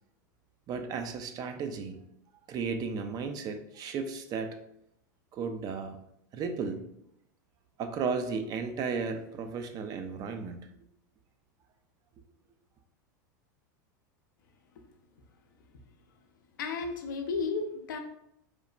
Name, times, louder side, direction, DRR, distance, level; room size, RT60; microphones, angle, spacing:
voice 1, 0.7-2.0 2.5-4.6 5.3-6.0 6.3-6.9 7.8-10.6, right 5 dB, 35° right, 7 dB, 0.3 m, -34 dB
voice 2, 16.6-18.0, left 4 dB, 75° left, 5 dB, 0.5 m, -33 dB
3.1 x 2.0 x 2.4 m, 0.76 s
hypercardioid pair, 100°, 11 cm